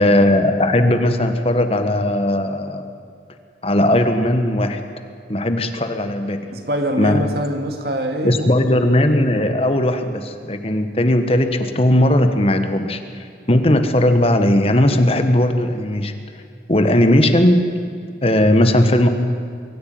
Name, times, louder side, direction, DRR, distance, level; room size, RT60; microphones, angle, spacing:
voice 1, 0.0-2.8 3.6-4.8 5.3-6.5 7.0-7.2 8.2-16.1 16.7-17.7 18.2-19.1, left 1 dB, 35° left, 7 dB, 1.4 m, -17 dB
voice 2, 6.5-8.5, equal, 60° right, 4 dB, 2.5 m, -24 dB
23.0 x 14.5 x 9.4 m, 2.4 s
head